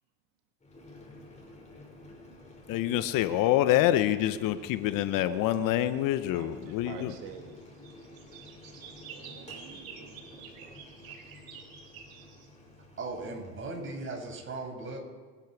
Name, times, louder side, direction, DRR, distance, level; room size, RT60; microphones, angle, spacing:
Boiling, 0.6-14.1, left 2 dB, 15° left, 5.7 m, -51 dB
voice 1, 2.7-7.1, left 13 dB, 55° left, 12 dB, 1.0 m, -26 dB
voice 2, 6.3-7.6 9.1-10.8 11.1-11.2, right 8 dB, 65° right, 3 dB, 2.3 m, -48 dB
sound 1, 7.8-12.5, right 6 dB, 85° right, 4.4 m, -48 dB
voice 3, 13.0-15.0, right 3 dB, 30° right, 1 dB, 5.9 m, -37 dB
27.0 x 10.5 x 4.8 m, 1.4 s
hypercardioid pair, 90°, 41 cm